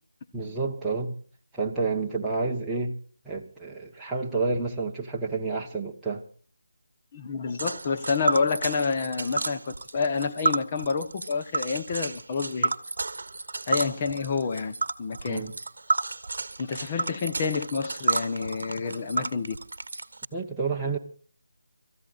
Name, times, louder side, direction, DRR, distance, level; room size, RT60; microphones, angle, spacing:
voice 1, 0.3-1.1 1.5-3.0 3.2-6.2 15.3-15.5 20.3-21.0, right 4 dB, 5° right, 1.1 m, -29 dB
voice 2, 7.1-12.7 13.7-15.4 16.6-19.6, left 5 dB, 25° left, 1.1 m, -28 dB
Tick, 7.6-20.3, right 3 dB, 65° right, 1.0 m, -31 dB
30.0 x 14.0 x 2.5 m
figure-of-eight pair, 170°, 0 cm